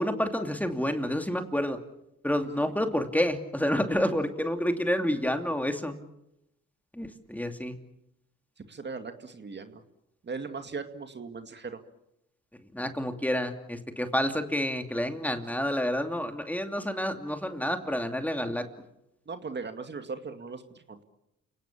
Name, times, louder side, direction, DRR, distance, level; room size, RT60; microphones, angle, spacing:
voice 1, 0.0-1.8 2.2-5.9 7.0-7.8 12.7-18.6, equal, 5° left, 6 dB, 2.7 m, -29 dB
voice 2, 8.7-9.8 10.2-11.8 19.3-21.0, right 4 dB, 35° right, 7 dB, 2.2 m, -38 dB
29.5 x 18.5 x 8.6 m, 0.85 s
cardioid pair, 90°, 30 cm